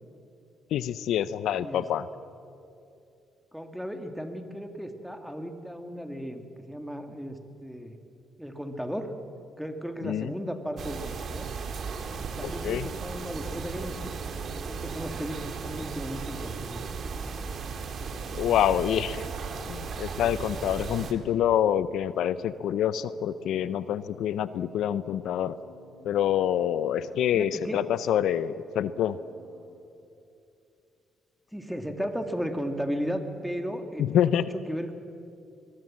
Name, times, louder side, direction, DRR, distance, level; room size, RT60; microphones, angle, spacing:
voice 1, 0.7-2.1 10.0-10.3 12.4-12.9 18.3-19.2 19.7-25.6 26.0-29.2 34.0-34.4, left 10 dB, 80° left, 15 dB, 0.6 m, -26 dB
voice 2, 1.5-1.8 3.5-8.0 8.4-9.1 9.6-11.5 12.2-14.1 14.7-16.9 27.3-27.8 31.5-34.9, equal, ahead, 6 dB, 2.4 m, -35 dB
sound 1, 10.8-21.1, right 5 dB, 60° right, 2.4 m, -36 dB
sound 2, 17.0-29.7, right 2 dB, 90° right, 8.0 m, -54 dB
22.5 x 22.0 x 7.6 m, 2.6 s
cardioid pair, 90°, 0 cm